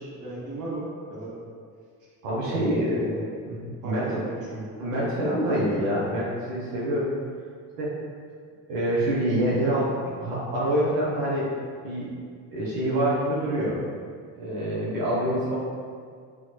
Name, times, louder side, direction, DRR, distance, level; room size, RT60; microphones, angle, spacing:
voice 1, 0.0-1.3 2.4-3.3 3.8-4.7, right 1 dB, 45° right, -5 dB, 1.0 m, -35 dB
voice 2, 2.2-3.0 3.5-4.2 4.8-7.1 7.8-7.9 8.7-11.5 11.8-12.1 12.5-13.8 14.4-15.6, right 1 dB, 85° right, -7 dB, 0.7 m, -26 dB
2.9 x 2.2 x 2.2 m, 2.1 s
hypercardioid pair, 60°, 43 cm